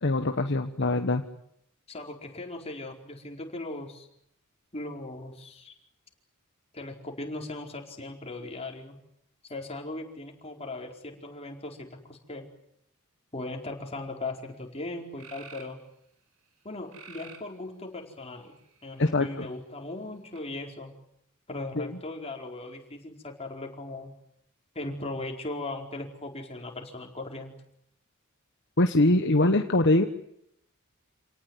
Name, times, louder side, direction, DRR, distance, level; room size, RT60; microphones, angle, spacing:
voice 1, 0.0-1.2 19.0-19.5 21.7-21.9 28.8-30.0, left 2 dB, 55° left, 7 dB, 1.3 m, -23 dB
voice 2, 1.9-4.1 4.7-5.7 6.7-9.0 9.5-12.5 13.3-15.8 16.6-18.5 18.8-20.9 21.5-24.1 24.7-27.5, left 2 dB, 30° left, 2 dB, 4.6 m, -38 dB
sound 1, 14.5-14.6 15.2-15.8 16.9-17.5 18.4-19.0 20.3-20.4, right 5 dB, 80° right, 5.0 m, -48 dB
28.5 x 18.5 x 9.6 m, 0.75 s
head